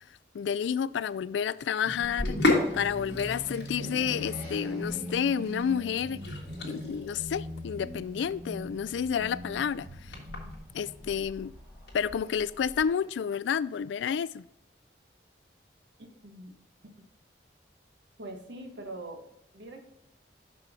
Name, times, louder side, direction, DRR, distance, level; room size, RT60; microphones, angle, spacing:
voice 1, 0.3-6.2 6.6-10.1 10.7-11.5 11.9-14.4, left 7 dB, 80° left, 0.3 m, -30 dB
sound 1, 1.8-12.6, equal, 15° right, 2.7 m, -41 dB
Sink (filling or washing), 2.0-12.9, left 2 dB, 65° left, 1.9 m, -35 dB
voice 2, 18.2-19.3 19.5-19.8, right 2 dB, 75° right, 1.5 m, -42 dB
6.1 x 5.7 x 5.2 m
head